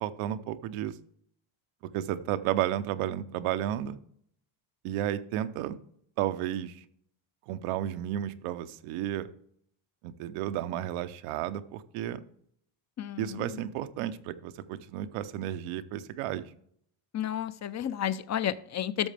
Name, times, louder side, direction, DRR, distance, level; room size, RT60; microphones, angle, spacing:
voice 1, 0.0-1.0 1.9-4.0 4.8-5.8 6.2-6.9 7.5-9.3 10.0-12.2 13.2-16.4, right 12 dB, 90° right, 11 dB, 0.8 m, -32 dB
voice 2, 13.0-13.6 17.1-19.1, left 10 dB, 35° left, 15 dB, 0.5 m, -32 dB
12.5 x 6.6 x 3.4 m, 0.67 s
cardioid pair, 110°, 50 cm